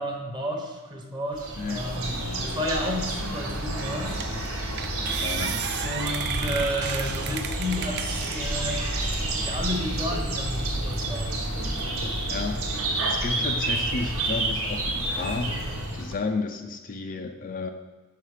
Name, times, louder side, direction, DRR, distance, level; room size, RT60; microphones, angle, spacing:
voice 1, 0.0-4.1 5.8-9.0 9.4-11.8, equal, 20° right, 1 dB, 0.9 m, -32 dB
sound 1, 1.3-16.2, right 1 dB, 80° right, 1.2 m, -29 dB
voice 2, 1.6-1.9 5.2-5.7 12.3-15.6 15.9-17.7, left 3 dB, 40° left, 5 dB, 0.4 m, -32 dB
sound 2, 3.5-3.6 4.2-4.4 4.8-8.4 8.9-9.6, right 7 dB, 50° right, 0.4 m, -34 dB
5.6 x 5.6 x 4.9 m, 1.3 s
head